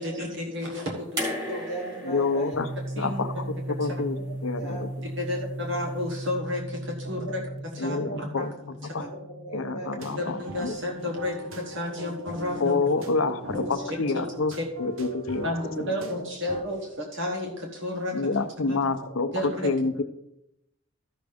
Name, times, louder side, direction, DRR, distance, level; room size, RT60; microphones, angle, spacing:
voice 1, 0.0-1.7 3.0-3.5 4.6-4.7 5.0-7.4 7.7-8.5 9.0-9.1 10.2-12.8 13.5-13.7 14.1-14.2 14.6-14.7 15.4-18.2 18.7-18.8 19.3-19.7, left 1 dB, 60° right, 1 dB, 1.2 m, -32 dB
sound 1, 1.2-4.3 5.5-5.6, left 1 dB, 20° right, 3.2 m, -36 dB
voice 2, 1.5-2.5 3.3-3.4 3.8-4.2 4.5-4.8 5.2-5.4 7.0-7.4 7.8-8.2 9.0-9.9 12.0-12.1 13.7-13.9 15.6-16.1 16.6-16.8 17.2-17.3 19.0-19.1, right 2 dB, 35° right, -4 dB, 4.1 m, -39 dB
voice 3, 2.0-2.7 3.0-4.9 7.8-9.0 9.5-10.8 12.5-15.5 15.8-16.1 18.1-20.0, left 3 dB, 75° left, 9 dB, 0.7 m, -28 dB
sound 2, 2.5-16.1, right 1 dB, ahead, 1.3 m, -39 dB
sound 3, 10.0-16.6, equal, 80° right, 0.9 m, -42 dB
13.5 x 6.2 x 3.5 m, 0.86 s
head